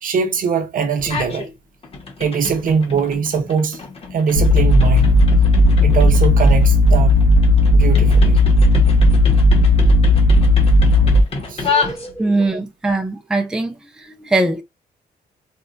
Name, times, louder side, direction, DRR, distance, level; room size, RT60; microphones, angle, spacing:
voice 1, 0.0-1.5 2.2-3.8 4.1-5.2 5.8-7.2 7.7-8.4 11.4-11.7 12.5-12.6, right 6 dB, 55° right, 0.7 m, -21 dB
sound 1, 1.0-1.5 1.8-12.5, left 4 dB, 35° left, 0.8 m, -29 dB
sound 2, 4.4-11.2, left 1 dB, 75° left, 1.1 m, -13 dB
voice 2, 11.6-13.8 14.2-14.6, right 2 dB, 5° right, 0.5 m, -21 dB
4.2 x 2.1 x 2.5 m
wide cardioid pair, 165°, 17 cm